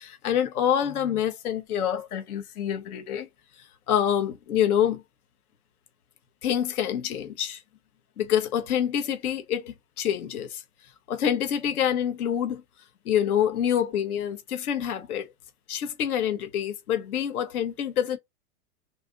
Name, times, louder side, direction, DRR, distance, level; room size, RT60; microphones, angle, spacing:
voice 1, 0.0-3.3 3.9-5.0 6.4-7.6 8.2-10.6 11.1-12.6 13.1-15.3 15.7-18.2, left 9 dB, 75° left, 0.8 m, -26 dB
2.6 x 2.4 x 3.7 m
hypercardioid pair, 115°, 45 cm